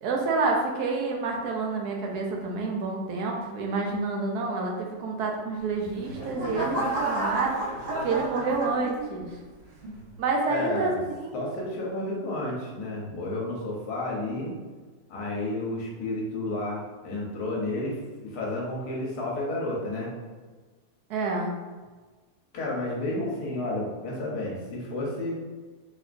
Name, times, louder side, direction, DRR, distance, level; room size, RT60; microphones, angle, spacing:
voice 1, 0.0-7.6 8.0-9.4 10.2-11.4 21.1-21.5, right 3 dB, 80° right, 0 dB, 1.2 m, -28 dB
sound 1, 5.7-9.3 9.8-10.2, right 1 dB, 45° right, 0.9 m, -31 dB
voice 2, 10.5-11.0 11.3-14.5 15.1-20.1 22.5-25.3, left 2 dB, 75° left, -3 dB, 1.4 m, -31 dB
4.2 x 2.9 x 2.5 m, 1.4 s
omnidirectional pair, 1.7 m